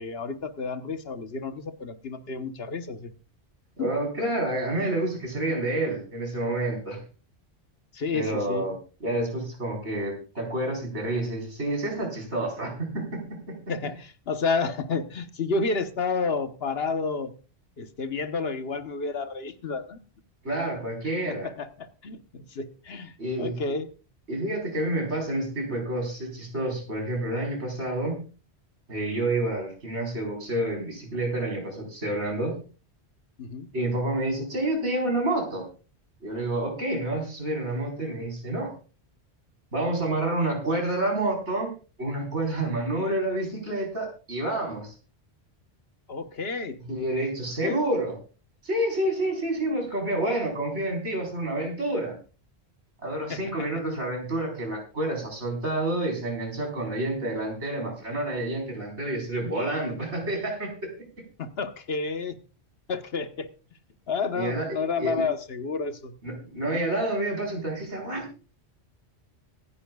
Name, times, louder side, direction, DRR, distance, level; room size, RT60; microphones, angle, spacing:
voice 1, 0.0-3.1 3.8-3.9 7.9-8.7 13.7-17.3 17.8-20.0 21.3-23.9 33.4-33.7 46.1-46.8 47.6-47.8 53.3-53.7 61.4-62.4 62.9-63.5 64.1-66.1, left 4 dB, 65° left, 9 dB, 1.3 m, -30 dB
voice 2, 3.8-7.0 8.1-13.6 20.4-21.5 23.2-23.6 24.3-28.2 28.9-32.6 33.7-35.7 36.2-38.7 39.7-41.7 42.0-44.9 46.8-48.2 48.6-52.2 53.0-60.9 64.3-65.2 66.2-68.3, right 1 dB, 85° right, 1 dB, 4.8 m, -29 dB
25.0 x 9.9 x 2.3 m, 0.34 s
omnidirectional pair, 1.1 m